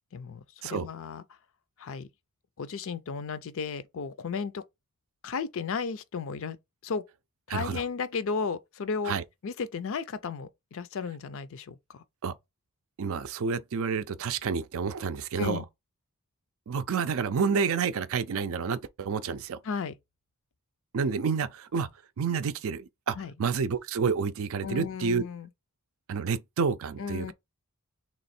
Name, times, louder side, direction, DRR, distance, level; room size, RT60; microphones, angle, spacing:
voice 1, 0.1-1.4 1.8-2.1 2.6-4.6 5.2-6.6 6.8-7.0 7.5-9.2 9.4-12.0 15.4-15.6 19.6-20.0 23.2-23.3 24.6-25.5 27.0-27.3, left 5 dB, 60° left, 0.5 m, -34 dB
voice 2, 7.5-7.8 9.1-9.2 12.2-12.4 13.0-15.6 16.7-19.6 20.9-21.9 22.2-25.2 26.1-27.3, right 5 dB, 65° right, 0.4 m, -29 dB
3.3 x 3.0 x 4.2 m
head